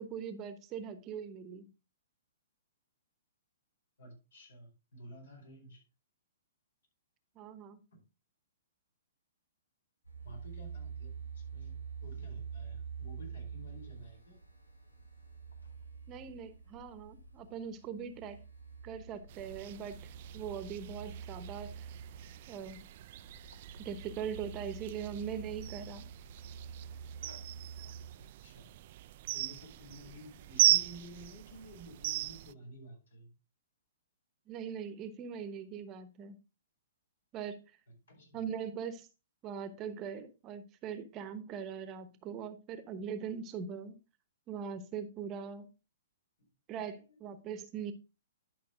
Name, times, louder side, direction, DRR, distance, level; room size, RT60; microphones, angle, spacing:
voice 1, 0.0-1.7 7.4-7.8 16.1-18.4 18.8-20.0 20.3-21.9 22.5-22.8 23.8-26.1 34.5-36.4 37.3-37.6 38.3-39.1 39.4-44.0 44.5-45.7 46.7-47.9, right 7 dB, 30° right, 1.0 m, -41 dB
voice 2, 4.0-5.8 7.9-8.0 10.2-14.4 28.1-28.8 29.3-33.3 38.1-38.5 46.4-46.5 46.9-47.3, equal, 70° left, 4.7 m, -52 dB
sound 1, 10.0-28.1, right 6 dB, 90° left, 2.2 m, -47 dB
sound 2, 19.3-32.5, right 15 dB, 45° right, 0.3 m, -37 dB
11.5 x 5.6 x 3.7 m
figure-of-eight pair, 120°, 0 cm